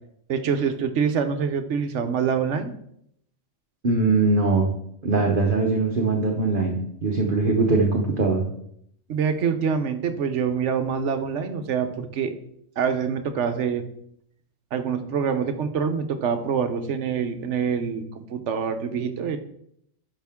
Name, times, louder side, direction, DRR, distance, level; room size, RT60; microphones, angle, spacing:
voice 1, 0.3-2.7 9.1-12.3 12.8-13.8 14.7-19.4, right 6 dB, 65° right, 9 dB, 1.1 m, -25 dB
voice 2, 3.8-4.7 5.0-8.4, right 3 dB, 45° right, 2 dB, 1.0 m, -21 dB
10.0 x 5.9 x 3.6 m, 0.72 s
omnidirectional pair, 1.3 m